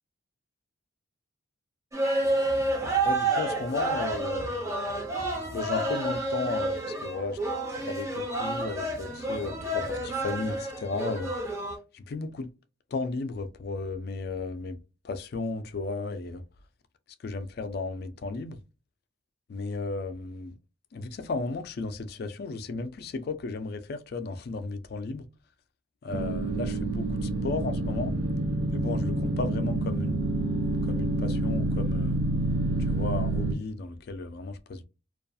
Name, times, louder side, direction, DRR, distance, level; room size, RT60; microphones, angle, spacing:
sound 1, 1.9-11.8, right 2 dB, 15° right, 0.5 m, -29 dB
voice 1, 3.0-4.8 5.5-7.4 7.7-11.3 11.9-12.5 12.9-14.8 15.0-16.4 17.2-18.6 19.5-20.5 20.9-25.2 26.0-27.1 27.4-28.1 28.7-30.2 30.9-32.2 32.9-34.8, left 3 dB, 50° left, 0.3 m, -34 dB
sound 2, 26.1-33.5, right 2 dB, 70° right, 0.6 m, -28 dB
2.3 x 2.3 x 2.6 m
head